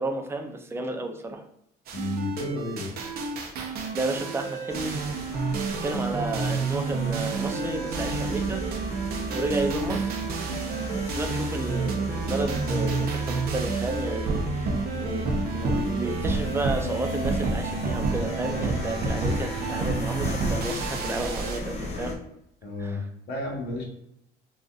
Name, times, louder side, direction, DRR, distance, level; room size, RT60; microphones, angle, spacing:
voice 1, 0.0-1.4 3.9-5.0 5.8-8.6 9.3-10.2 10.9-22.2 22.8-23.0, right 2 dB, 15° right, 3 dB, 0.5 m, -32 dB
voice 2, 1.9-2.9 19.1-19.4 22.6-23.0 23.3-23.8, left 1 dB, 75° left, -1 dB, 1.2 m, -32 dB
sound 1, 1.9-21.6, right 3 dB, 65° right, 0.6 m, -29 dB
sound 2, 4.7-22.1, left 1 dB, 40° left, 0.8 m, -37 dB
3.9 x 2.4 x 2.4 m, 0.80 s
cardioid pair, 110°, 17 cm